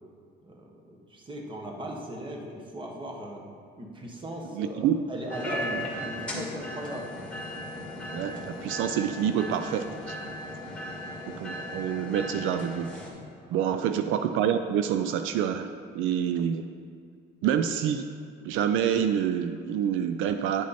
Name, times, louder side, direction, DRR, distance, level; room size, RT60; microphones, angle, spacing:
voice 1, 0.4-3.4 3.8-7.1 10.7-10.8 13.5-13.6, right 1 dB, 25° right, 1 dB, 1.2 m, -38 dB
voice 2, 4.5-5.0 5.7-5.8 8.1-10.2 11.3-13.0 13.5-15.7 15.9-16.7 17.4-18.1 18.4-20.7, right 9 dB, 75° right, 8 dB, 0.4 m, -27 dB
sound 1, 5.3-13.1, left 1 dB, 5° left, 1.8 m, -37 dB
9.9 x 6.2 x 4.2 m, 2.2 s
cardioid pair, 130°, 20 cm